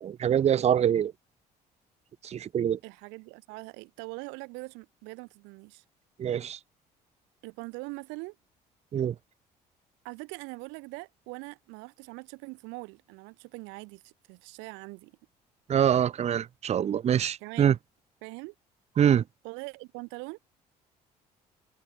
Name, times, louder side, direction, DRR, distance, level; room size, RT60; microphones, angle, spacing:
voice 1, 0.0-1.1 2.2-2.8 6.2-6.6 8.9-9.1 15.7-17.8 19.0-19.2, right 9 dB, 35° right, 0.5 m, -24 dB
voice 2, 2.8-5.8 7.4-8.4 10.0-15.1 17.4-17.8 18.2-18.5 19.4-20.4, right 28 dB, 65° right, 0.9 m, -42 dB
figure-of-eight pair, 50°, 20 cm